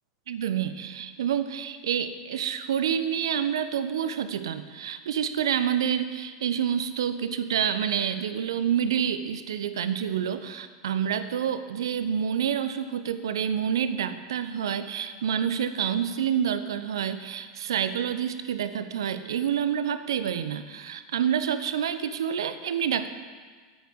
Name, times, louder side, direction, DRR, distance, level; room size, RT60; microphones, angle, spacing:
voice 1, 0.3-23.1, right 8 dB, 70° right, 11 dB, 1.0 m, -28 dB
14.0 x 9.8 x 9.5 m, 1.5 s
figure-of-eight pair, 90°, 3 cm